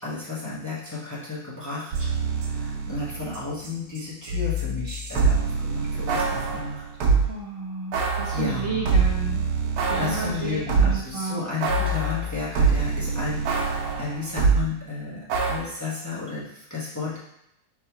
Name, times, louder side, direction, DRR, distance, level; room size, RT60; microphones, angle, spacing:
voice 1, 0.0-2.1 2.4-6.8 8.3-8.8 10.0-17.2, left 4 dB, 15° left, -7 dB, 0.8 m, -33 dB
sound 1, 1.9-7.3 7.9-11.1 11.6-14.6 15.3-15.6, right 4 dB, 90° right, 1.3 m, -25 dB
voice 2, 7.3-9.4 9.9-11.4, right 2 dB, 40° right, -6 dB, 0.5 m, -31 dB
3.6 x 2.9 x 4.4 m, 0.82 s
omnidirectional pair, 1.7 m